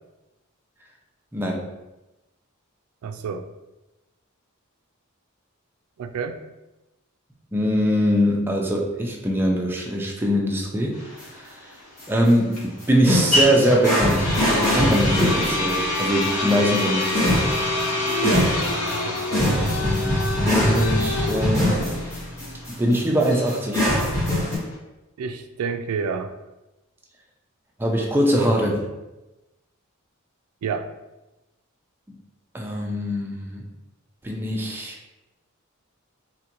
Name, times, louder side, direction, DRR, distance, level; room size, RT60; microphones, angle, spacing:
voice 1, 1.3-1.6 7.5-11.7 12.1-12.6 12.9-17.5 19.4-21.9 22.7-23.8 27.8-28.9 32.1-32.2 32.5-33.7 34.2-35.0, equal, 10° right, 0 dB, 0.4 m, -23 dB
voice 2, 3.0-3.5 6.0-6.4 18.2-18.5 18.9-19.5 25.2-26.3 30.6-30.9, right 6 dB, 85° right, 8 dB, 0.3 m, -29 dB
sound 1, 10.9-24.8, left 2 dB, 70° left, 0.9 m, -27 dB
sound 2, 11.2-11.3 12.0-12.3 12.5-24.6, left 1 dB, 15° left, 1.0 m, -24 dB
3.7 x 2.2 x 2.9 m, 1.0 s
head